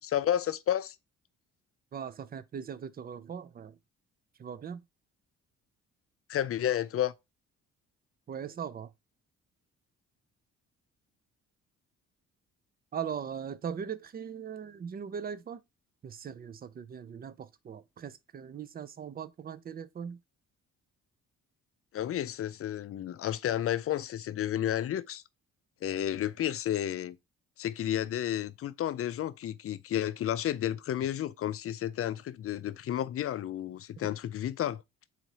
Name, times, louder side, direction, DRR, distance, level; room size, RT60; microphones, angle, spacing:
voice 1, 0.0-1.0 6.3-7.1 21.9-25.2 25.8-27.2 27.6-34.8, left 11 dB, 50° left, 0.5 m, -31 dB
voice 2, 1.9-3.8 4.4-4.8 8.3-8.9 12.9-15.6 16.0-20.2, right 7 dB, 30° right, 0.5 m, -39 dB
4.1 x 2.7 x 4.6 m
cardioid pair, 90°, 30 cm